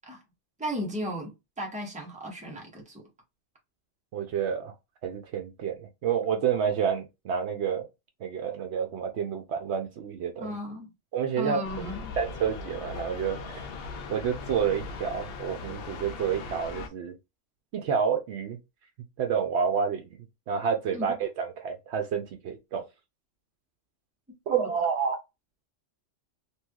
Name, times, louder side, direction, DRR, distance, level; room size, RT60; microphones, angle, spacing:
voice 1, 0.6-3.1 10.4-10.9 11.4-12.2 20.9-21.1 24.5-24.7, equal, 5° right, 0.9 m, -35 dB
voice 2, 4.1-4.7 5.0-7.9 8.2-10.5 11.1-11.6 12.2-13.7 14.1-17.2 17.7-18.6 19.2-20.0 20.5-22.8 24.5-25.2, right 7 dB, 70° right, 0.8 m, -29 dB
sound 1, 11.6-16.9, left 4 dB, 60° left, 0.7 m, -39 dB
3.1 x 2.8 x 2.3 m
omnidirectional pair, 1.3 m